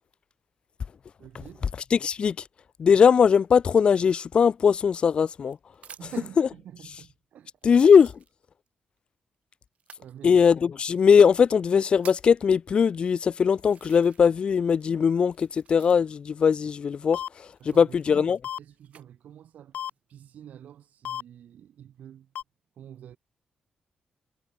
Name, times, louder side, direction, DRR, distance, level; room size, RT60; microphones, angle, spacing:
voice 1, 1.2-1.7 6.0-7.7 10.0-10.4 17.6-18.3 18.6-19.8 20.1-22.3 22.8-23.2, right 10 dB, 75° right, 6.2 m, -46 dB
voice 2, 1.9-2.4 2.8-5.6 7.6-8.1 10.2-17.2 17.8-18.4, left 6 dB, 40° left, 0.5 m, -20 dB
sound 1, 4.7-6.4 7.0-7.1 7.6-8.7 9.8-10.1 11.0-11.1 11.6-12.4 13.1-13.2 13.6-14.5 14.7-16.3 17.5-19.1 19.7-20.2, right 8 dB, 55° right, 5.5 m, -51 dB
sound 2, 17.1-17.3 18.4-18.6 19.7-19.9 21.0-21.2 22.3-22.4, left 10 dB, 75° left, 3.7 m, -32 dB
wide cardioid pair, 150°, 3 cm